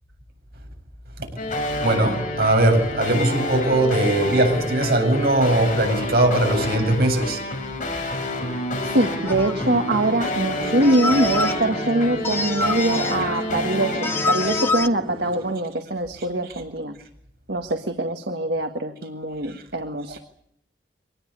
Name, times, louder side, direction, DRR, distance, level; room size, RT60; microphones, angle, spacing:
sound 1, 1.4-14.7, left 2 dB, 45° left, 6.5 m, -29 dB
voice 1, 1.8-7.4 10.6-10.7 20.1-20.2, right 1 dB, 55° right, 7.9 m, -20 dB
voice 2, 8.8-17.0 17.5-20.2, right 1 dB, 75° right, 1.7 m, -23 dB
sound 2, 9.2-9.6 10.8-11.5 12.2-13.2 14.0-14.9, left 3 dB, 15° left, 1.0 m, -25 dB
sound 3, 9.2-15.5, equal, 30° right, 6.9 m, -35 dB
25.0 x 20.0 x 8.4 m
head